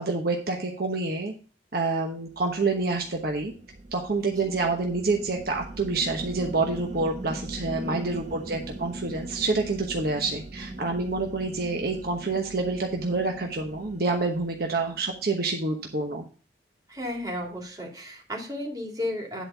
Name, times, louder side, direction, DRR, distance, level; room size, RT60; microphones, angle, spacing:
voice 1, 0.0-1.3 1.7-3.5 3.9-16.2, right 3 dB, 55° right, 2 dB, 1.1 m, -27 dB
sound 1, 2.3-15.8, right 2 dB, 40° right, 0.8 m, -41 dB
voice 2, 7.7-8.2 16.9-19.4, left 1 dB, 20° right, -1 dB, 2.7 m, -34 dB
10.5 x 4.3 x 5.5 m, 0.38 s
head